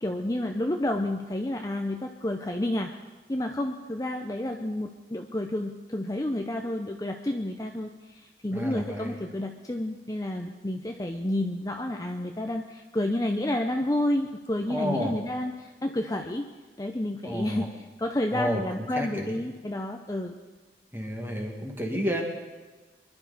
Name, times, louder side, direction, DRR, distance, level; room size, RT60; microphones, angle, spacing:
voice 1, 0.0-2.9 3.3-16.4 16.8-17.7 18.0-20.4, left 1 dB, 20° left, 3 dB, 0.7 m, -30 dB
voice 2, 8.5-9.1 14.7-15.1 17.2-17.7 18.3-19.4 20.9-22.2, equal, 15° right, 0 dB, 2.0 m, -31 dB
24.5 x 11.5 x 4.1 m, 1.3 s
head